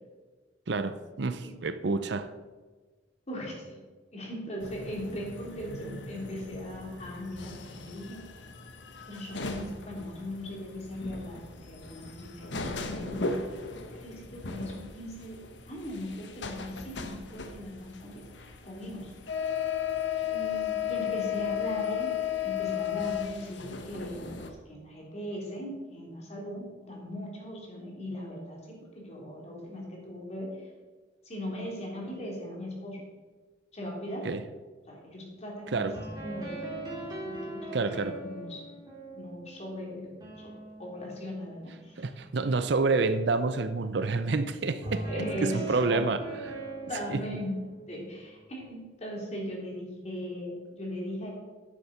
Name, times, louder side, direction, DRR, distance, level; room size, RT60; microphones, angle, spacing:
voice 1, 0.7-2.3 34.2-34.4 35.7-35.9 37.7-38.2 42.0-46.2 47.1-47.2, right 3 dB, 65° right, 0.6 m, -28 dB
voice 2, 3.3-3.8 4.1-8.2 9.1-11.4 11.7-13.3 14.0-15.4 15.6-19.1 20.3-22.1 22.4-30.7 31.2-33.0 33.7-34.3 34.9-35.9 36.2-36.7 37.2-38.7 39.1-42.1 45.1-46.1 46.9-47.6 47.9-51.3, equal, 35° left, 3.4 m, -39 dB
sound 1, 4.6-24.5, left 7 dB, 70° left, 1.1 m, -36 dB
sound 2, 35.9-41.8 44.8-48.4, right 2 dB, 20° right, 2.8 m, -40 dB
10.0 x 7.2 x 6.9 m
head